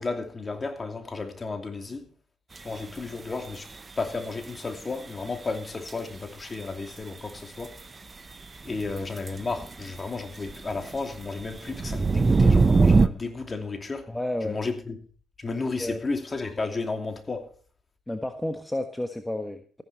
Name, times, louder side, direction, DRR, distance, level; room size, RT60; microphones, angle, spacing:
voice 1, 0.0-2.1 2.6-3.7 4.0-7.8 8.6-14.1 14.4-14.9 15.4-17.5, left 3 dB, 30° left, 2.7 m, -33 dB
sound 1, 2.6-2.7 5.9-6.0 8.7-9.7 10.5-10.9 11.2-13.1, right 4 dB, 35° right, 0.7 m, -20 dB
voice 2, 14.1-14.6 15.7-16.0 18.1-19.8, left 1 dB, 10° left, 1.4 m, -31 dB
14.5 x 11.0 x 4.2 m
supercardioid pair, 55°, 0 cm